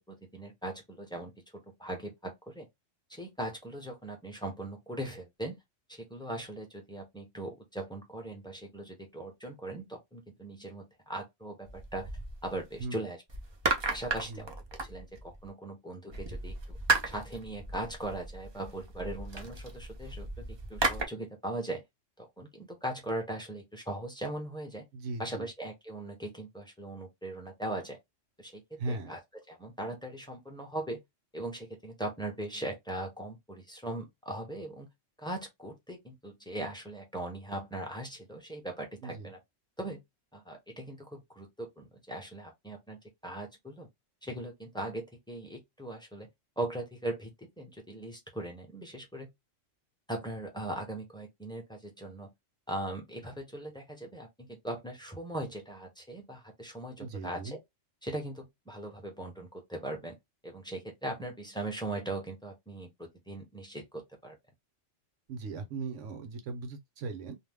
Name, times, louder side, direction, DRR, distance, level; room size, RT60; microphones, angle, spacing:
voice 1, 0.1-2.7 3.1-5.6 5.9-12.1 12.4-13.2 13.8-14.5 14.8-16.8 17.0-21.8 22.2-24.8 25.2-28.0 28.4-29.2 29.5-31.0 31.3-34.9 35.2-39.4 39.8-40.0 40.3-43.9 44.2-46.3 46.6-49.3 50.1-52.3 52.7-57.6 58.0-60.2 60.4-64.4, right 1 dB, 5° left, 0.5 m, -39 dB
sound 1, 11.7-12.9 13.3-15.5 16.1-21.1, right 3 dB, 40° right, 0.4 m, -34 dB
voice 2, 24.9-25.5 28.8-29.1 39.0-39.3 57.0-57.6 65.3-67.3, right 3 dB, 75° right, 1.1 m, -38 dB
2.6 x 2.1 x 3.4 m
omnidirectional pair, 1.3 m